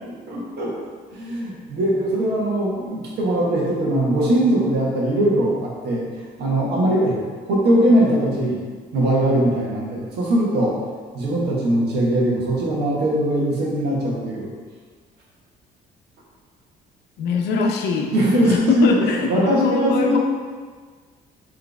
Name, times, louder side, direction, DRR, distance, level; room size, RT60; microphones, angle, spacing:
voice 1, 0.0-0.7 1.1-6.0 6.4-7.2 7.5-10.7 11.1-14.5 18.1-20.2, right 1 dB, 75° right, -4 dB, 1.2 m, -20 dB
voice 2, 17.2-18.1 18.4-20.2, left 5 dB, 80° left, 2 dB, 0.6 m, -22 dB
4.1 x 3.3 x 3.4 m, 1.6 s
cardioid pair, 110°, 17 cm